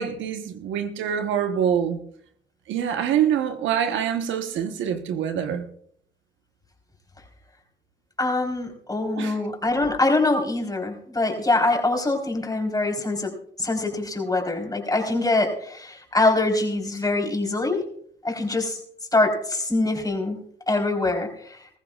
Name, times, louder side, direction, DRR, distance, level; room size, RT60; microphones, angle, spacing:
voice 1, 0.0-2.0 2.7-5.6 9.2-9.4, right 9 dB, 90° right, 7 dB, 1.2 m, -25 dB
voice 2, 8.2-13.3 13.6-17.8 18.2-18.8 19.1-21.8, left 2 dB, 20° left, 2 dB, 4.1 m, -24 dB
20.5 x 14.5 x 2.4 m, 0.63 s
cardioid pair, 70°, 19 cm